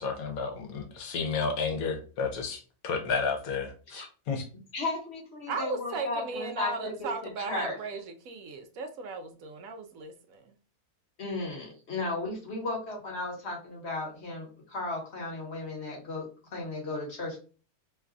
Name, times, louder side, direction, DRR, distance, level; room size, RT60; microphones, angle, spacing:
voice 1, 0.0-4.4, left 5 dB, 75° left, 4 dB, 1.2 m, -32 dB
voice 2, 4.7-7.1 7.4-7.8 11.2-17.4, left 2 dB, 50° left, 0 dB, 1.3 m, -35 dB
voice 3, 5.5-10.4, right 3 dB, 70° right, 6 dB, 0.9 m, -36 dB
3.1 x 2.3 x 3.7 m, 0.37 s
omnidirectional pair, 1.6 m